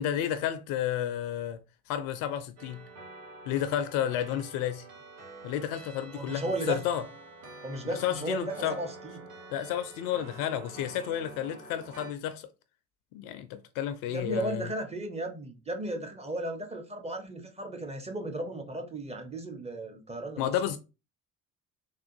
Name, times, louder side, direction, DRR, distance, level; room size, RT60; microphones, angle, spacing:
voice 1, 0.0-1.6 1.9-2.8 3.5-4.8 5.4-7.0 7.8-8.8 9.5-12.5 13.1-14.7 20.4-20.8, left 10 dB, 50° left, 0.4 m, -31 dB
sound 1, 2.6-12.1, right 2 dB, 85° right, 0.8 m, -47 dB
voice 2, 6.1-6.8 7.6-9.3 14.1-20.5, right 1 dB, 15° right, 0.6 m, -35 dB
3.6 x 2.4 x 2.6 m
figure-of-eight pair, 55°, 45 cm